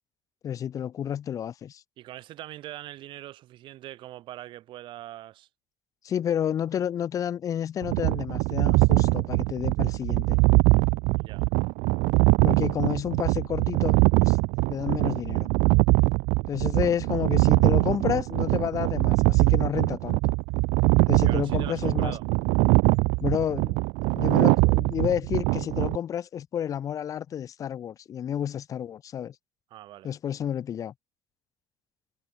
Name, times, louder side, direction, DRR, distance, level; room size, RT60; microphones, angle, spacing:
voice 1, 0.4-1.8 6.0-10.4 12.4-14.4 14.7-15.5 16.5-20.3 21.1-22.2 23.2-23.8 24.2-29.3 30.0-30.9, left 9 dB, 30° left, 1.3 m, -30 dB
voice 2, 2.0-5.5 11.2-11.5 21.2-22.2 29.7-30.1, right 14 dB, 50° right, 2.8 m, -42 dB
sound 1, 7.8-26.0, right 28 dB, 90° right, 0.5 m, -22 dB
cardioid pair, 170°, 11 cm